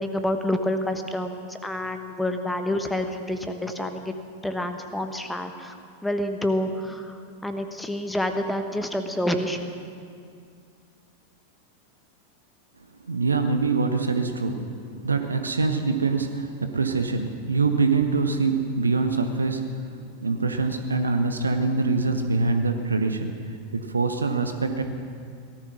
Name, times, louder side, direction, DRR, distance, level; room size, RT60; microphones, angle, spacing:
voice 1, 0.0-4.1 4.4-5.8 6.0-9.6, left 1 dB, 5° left, 7 dB, 1.2 m, -28 dB
voice 2, 13.1-14.7 15.0-23.4 23.7-24.8, right 4 dB, 75° right, 7 dB, 1.0 m, -24 dB
17.5 x 13.5 x 6.2 m, 2.3 s
figure-of-eight pair, 90°, 0 cm